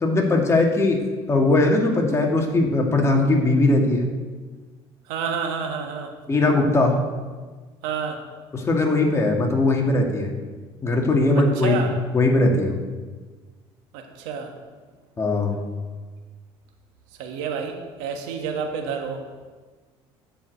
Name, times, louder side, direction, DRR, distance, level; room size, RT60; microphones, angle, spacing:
voice 1, 0.0-4.1 6.3-7.0 8.5-10.3 10.8-12.8 15.2-15.6, left 2 dB, 25° left, 1 dB, 1.9 m, -20 dB
voice 2, 5.1-6.1 7.8-8.2 11.6-11.9 13.9-14.5 17.2-17.7 18.0-19.2, right 6 dB, 85° right, 3 dB, 1.5 m, -28 dB
10.5 x 5.1 x 8.1 m, 1.4 s
cardioid pair, 105°, 12 cm